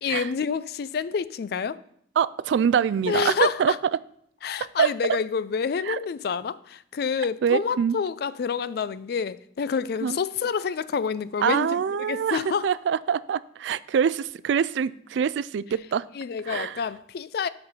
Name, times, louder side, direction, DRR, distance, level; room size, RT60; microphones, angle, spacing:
voice 1, 0.0-1.8 3.1-3.8 4.4-12.7 16.1-17.5, left 6 dB, 60° left, 0.3 m, -28 dB
voice 2, 2.2-3.7 4.8-4.9 5.9-6.0 7.4-8.0 10.0-10.2 11.4-16.1 16.5-16.8, right 7 dB, 75° right, 0.3 m, -24 dB
6.7 x 5.8 x 5.5 m
head